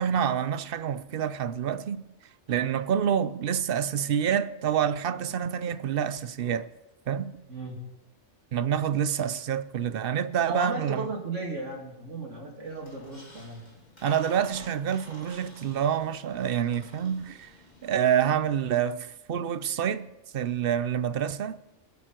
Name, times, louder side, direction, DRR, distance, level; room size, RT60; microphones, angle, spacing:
voice 1, 0.0-2.0 2.5-6.7 7.1-7.3 8.5-11.1 14.0-17.5 17.8-20.1 20.3-21.6, right 8 dB, 55° right, 0.7 m, -27 dB
voice 2, 10.5-13.6, right 3 dB, 80° right, 3.0 m, -35 dB
Squeak, 12.6-18.4, left 1 dB, 35° left, 2.5 m, -51 dB
23.5 x 8.2 x 4.4 m
omnidirectional pair, 1.2 m